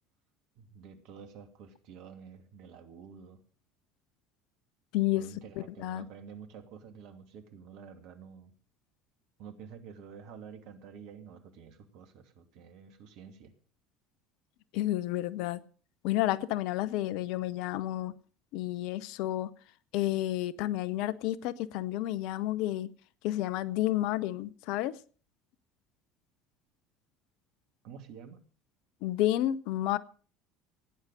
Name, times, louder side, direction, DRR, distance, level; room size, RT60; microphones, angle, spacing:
voice 1, 0.6-3.4 5.2-8.5 9.4-13.5 27.8-28.4, right 7 dB, 60° right, 2.6 m, -49 dB
voice 2, 4.9-5.2 5.6-6.1 14.7-15.6 16.0-18.1 18.5-19.5 19.9-22.9 23.2-25.0 29.0-30.0, left 15 dB, 65° left, 0.8 m, -30 dB
16.5 x 9.7 x 6.6 m
hypercardioid pair, 65°, 0 cm